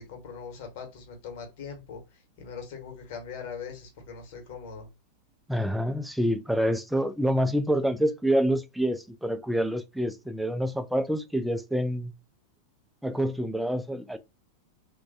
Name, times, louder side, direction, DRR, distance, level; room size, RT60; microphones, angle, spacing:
voice 1, 0.0-4.9, left 6 dB, 50° left, 1.0 m, -41 dB
voice 2, 5.5-12.1 13.0-14.2, equal, ahead, 0.3 m, -27 dB
3.1 x 2.2 x 2.5 m
figure-of-eight pair, 90°, 0 cm